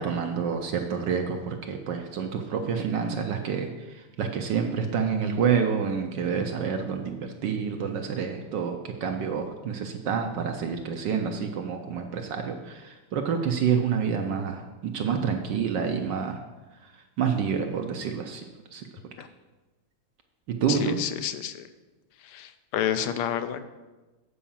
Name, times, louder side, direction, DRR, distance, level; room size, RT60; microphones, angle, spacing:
voice 1, 0.0-16.4 17.2-18.4 18.7-18.8 20.5-21.0, right 6 dB, 65° right, 5 dB, 1.2 m, -28 dB
voice 2, 20.7-21.7 22.2-23.6, left 10 dB, 80° left, 10 dB, 1.5 m, -30 dB
8.5 x 4.8 x 7.0 m, 1.2 s
omnidirectional pair, 2.4 m